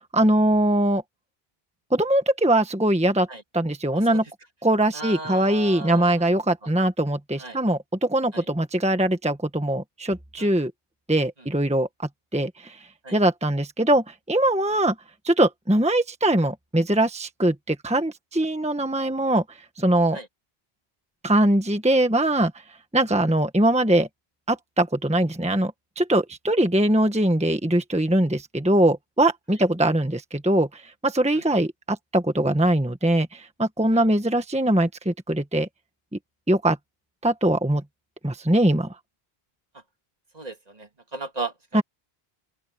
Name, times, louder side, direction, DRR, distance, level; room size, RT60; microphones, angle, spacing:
voice 1, 0.1-1.0 1.9-3.3 3.5-4.2 4.6-10.7 11.1-11.9 12.3-14.9 15.2-20.2 21.2-22.6 22.9-24.1 24.5-35.7 36.1-36.2 36.5-36.8 37.2-37.8 38.2-39.0 41.7-41.8, right 1 dB, 5° right, 1.3 m, -22 dB
voice 2, 4.9-6.2 7.4-7.6 8.3-8.4 10.4-10.5 13.0-13.2 20.1-20.3 33.9-34.0 40.3-41.8, right 3 dB, 40° right, 2.1 m, -35 dB
open air
omnidirectional pair, 1.1 m